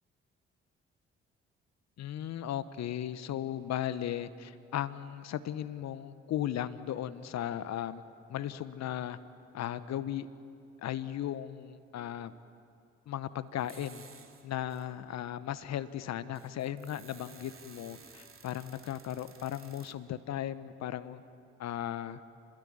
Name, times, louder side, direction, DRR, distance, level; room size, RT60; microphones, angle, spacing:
voice 1, 2.0-8.0 8.3-9.2 9.5-10.3 10.8-12.3 13.1-14.0 14.4-21.2 21.6-22.2, left 11 dB, 60° left, 14 dB, 1.1 m, -36 dB
Squeaky Door, 13.6-14.9 15.5-15.6 16.1-19.9, right 5 dB, 45° right, 3.1 m, -55 dB
30.0 x 21.0 x 9.5 m, 2.6 s
hypercardioid pair, 45°, 30 cm